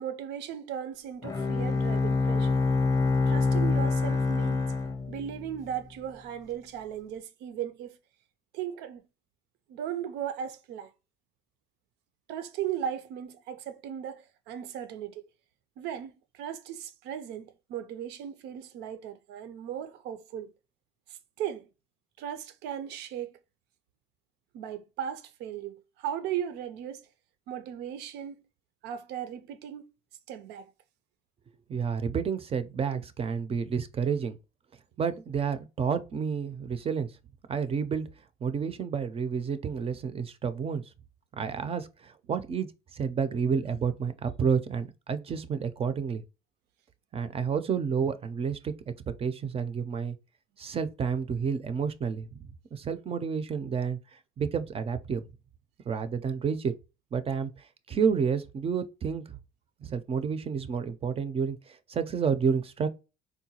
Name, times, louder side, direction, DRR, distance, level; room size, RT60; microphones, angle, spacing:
voice 1, 0.0-2.6 3.3-4.7 5.1-8.0 8.5-9.1 9.7-10.9 12.3-15.2 15.8-20.5 21.1-21.7 22.2-23.4 24.5-27.1 27.5-28.4 28.8-29.8 30.3-30.7, right 9 dB, 85° right, 0.5 m, -37 dB
Bowed string instrument, 1.2-5.7, left 3 dB, 20° left, 0.6 m, -26 dB
voice 2, 31.7-34.4 35.0-37.1 37.5-38.1 38.4-40.8 41.4-46.2 47.1-48.7 49.2-50.2 50.6-52.4 52.7-54.0 54.4-55.2 55.9-56.7 57.1-57.5 57.9-59.4 59.8-61.6 61.9-62.9, right 6 dB, 35° right, 0.4 m, -30 dB
3.7 x 2.2 x 2.8 m
cardioid pair, 110°, 17 cm